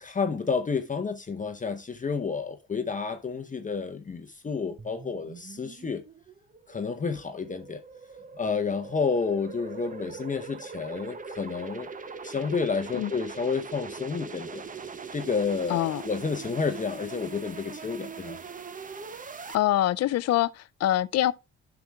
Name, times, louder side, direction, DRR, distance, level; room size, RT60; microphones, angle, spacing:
voice 1, 0.0-6.0 6.7-7.8 8.4-11.9 12.2-14.6 15.1-18.4, left 5 dB, 25° left, 0.8 m, -30 dB
sound 1, 4.8-19.6, right 5 dB, 25° right, 0.7 m, -41 dB
voice 2, 15.7-16.0 19.5-21.3, left 13 dB, 55° left, 0.5 m, -25 dB
11.5 x 6.0 x 2.3 m
cardioid pair, 90°, 30 cm